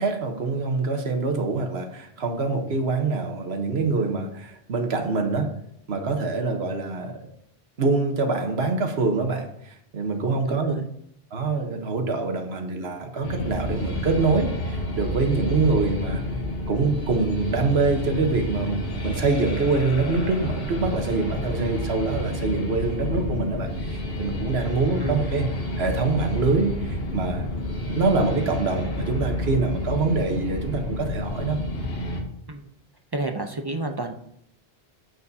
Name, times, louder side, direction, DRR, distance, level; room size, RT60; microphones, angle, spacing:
voice 1, 0.0-5.5 5.9-7.3 7.8-10.8 11.3-16.2 16.7-25.5 25.8-27.5 27.9-31.6, right 3 dB, 85° right, 4 dB, 1.3 m, -25 dB
voice 2, 10.5-10.9 25.0-25.3 32.5-32.6 33.1-34.1, right 2 dB, 30° right, 5 dB, 0.5 m, -30 dB
sound 1, 13.2-32.2, left 1 dB, 70° left, 1.4 m, -30 dB
9.3 x 7.5 x 2.7 m, 0.72 s
omnidirectional pair, 1.0 m